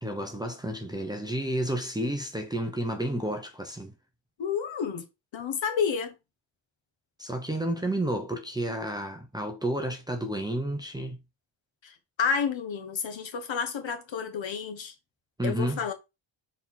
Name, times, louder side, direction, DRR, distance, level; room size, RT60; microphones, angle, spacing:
voice 1, 0.0-3.9 7.2-11.2 15.4-15.8, right 1 dB, 10° right, 0.8 m, -31 dB
voice 2, 4.4-5.1 5.3-6.1 11.8-14.9 15.4-15.9, left 6 dB, 65° left, 1.5 m, -30 dB
6.6 x 4.2 x 4.0 m
wide cardioid pair, 180°, 49 cm